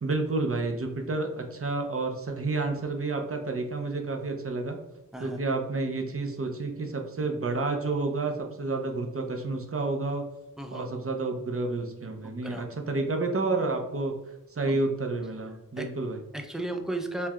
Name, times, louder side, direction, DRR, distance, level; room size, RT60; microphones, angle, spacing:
voice 1, 0.0-4.8 5.2-10.2 10.7-14.1 14.5-16.2, right 3 dB, 40° right, 3 dB, 0.6 m, -30 dB
voice 2, 10.6-10.9 12.2-12.7 14.7-14.8 15.8-15.9 16.3-17.3, right 2 dB, ahead, 4 dB, 0.4 m, -35 dB
4.5 x 2.3 x 2.2 m, 0.94 s
wide cardioid pair, 40°, 35 cm